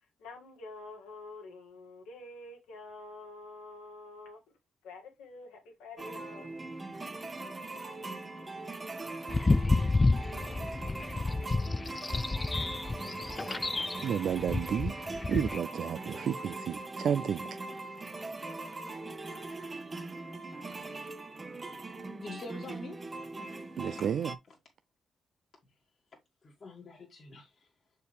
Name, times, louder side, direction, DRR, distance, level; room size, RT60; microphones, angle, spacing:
voice 1, 0.2-4.4 4.8-6.5, left 2 dB, 85° left, 1.9 m, -47 dB
sound 1, 6.0-24.4, right 2 dB, 35° right, 1.1 m, -41 dB
sound 2, 9.3-15.6, left 3 dB, 30° left, 0.3 m, -30 dB
voice 2, 14.0-14.9 15.3-17.5 23.8-24.3, right 8 dB, 65° right, 0.3 m, -31 dB
voice 3, 22.2-23.0 23.5-24.1 26.4-27.7, left 2 dB, 50° left, 1.8 m, -46 dB
6.5 x 4.8 x 3.2 m
hypercardioid pair, 40°, 0 cm